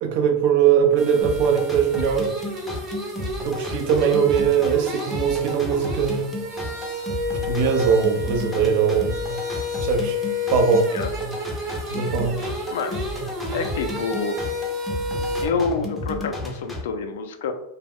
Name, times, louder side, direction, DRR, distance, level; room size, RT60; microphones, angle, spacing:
voice 1, 0.0-2.3 3.4-6.3 7.5-9.1 9.8-10.2 10.5-11.0 11.9-12.4, right 7 dB, 55° right, 5 dB, 0.5 m, -20 dB
sound 1, 1.0-15.5, left 2 dB, 35° right, 0.9 m, -31 dB
sound 2, 1.2-16.8, left 1 dB, 5° left, 0.5 m, -33 dB
voice 2, 13.5-14.4 15.4-17.5, left 5 dB, 80° left, 7 dB, 0.4 m, -27 dB
2.3 x 2.0 x 3.4 m, 0.82 s
supercardioid pair, 135°, 0 cm